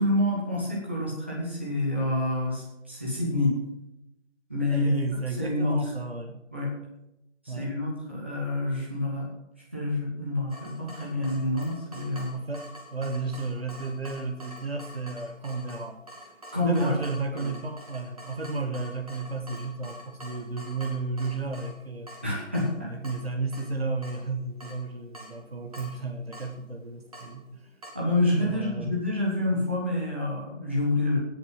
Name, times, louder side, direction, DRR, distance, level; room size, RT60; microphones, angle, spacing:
voice 1, 0.0-3.5 4.5-4.9 5.4-5.9 6.5-6.7 7.4-9.3 9.7-12.4 16.5-16.9 17.3-17.5 22.2-22.9 27.9-31.2, left 2 dB, 10° right, -6 dB, 1.6 m, -27 dB
voice 2, 4.7-6.4 7.5-7.7 12.3-16.0 16.6-22.1 22.9-27.7 28.4-29.0, right 3 dB, 50° right, 5 dB, 1.5 m, -33 dB
Water tap faucet / Drip, 10.5-27.9, equal, 30° right, 2.9 m, -47 dB
18.0 x 6.8 x 5.8 m, 0.87 s
figure-of-eight pair, 170°, 38 cm